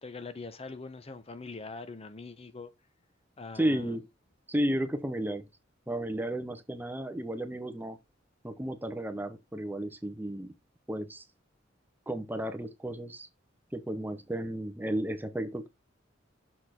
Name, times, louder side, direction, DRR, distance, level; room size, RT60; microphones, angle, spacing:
voice 1, 0.0-2.7 3.4-4.0, left 3 dB, 30° left, 0.7 m, -43 dB
voice 2, 3.5-4.0 4.5-5.5 5.9-8.0 8.4-10.5 10.9-11.2 12.1-13.3 13.7-15.7, right 1 dB, 10° right, 0.7 m, -33 dB
6.5 x 4.2 x 4.2 m
head